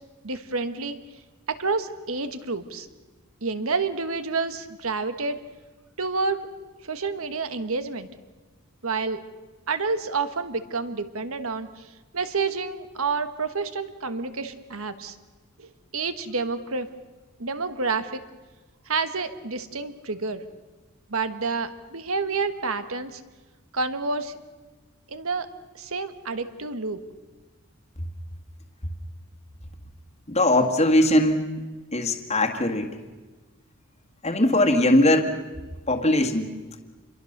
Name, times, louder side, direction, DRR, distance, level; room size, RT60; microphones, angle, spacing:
voice 1, 0.2-1.0 1.5-2.9 3.4-5.4 6.0-6.5 6.8-8.1 8.8-9.2 9.7-11.9 12.1-15.2 15.6-15.7 15.9-16.9 17.4-18.2 18.9-20.4 21.1-23.2 23.7-24.4 25.1-25.5 25.7-27.0, right 4 dB, 70° right, 10 dB, 1.5 m, -29 dB
voice 2, 30.3-31.5 31.9-32.9 34.2-35.3 35.9-36.5, left 1 dB, 30° left, 2 dB, 1.9 m, -20 dB
27.5 x 23.0 x 6.7 m, 1.2 s
head